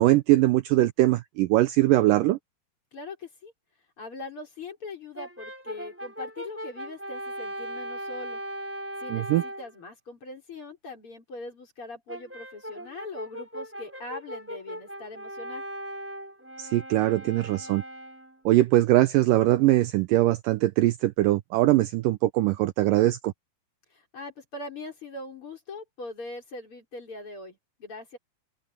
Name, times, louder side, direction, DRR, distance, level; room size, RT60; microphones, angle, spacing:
voice 1, 0.0-2.4 9.1-9.4 16.6-17.8 18.5-23.3, right 16 dB, 80° right, 2.1 m, -21 dB
voice 2, 2.9-3.5 4.0-8.4 9.0-15.6 23.9-28.2, left 3 dB, 35° left, 5.9 m, -41 dB
Brass instrument, 5.1-9.7 12.1-18.4, right 1 dB, 5° right, 5.0 m, -39 dB
open air
omnidirectional pair, 4.4 m